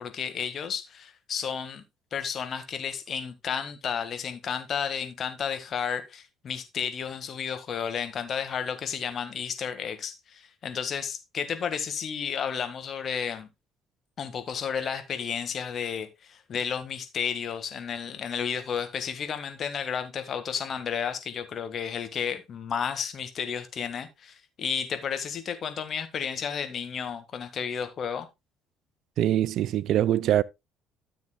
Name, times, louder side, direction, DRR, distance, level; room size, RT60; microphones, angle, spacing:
voice 1, 0.0-1.8 2.1-13.5 14.2-28.3, left 7 dB, 50° left, 1.6 m, -32 dB
voice 2, 29.2-30.4, right 12 dB, 60° right, 0.4 m, -23 dB
13.5 x 7.1 x 2.2 m
hypercardioid pair, 50°, 0 cm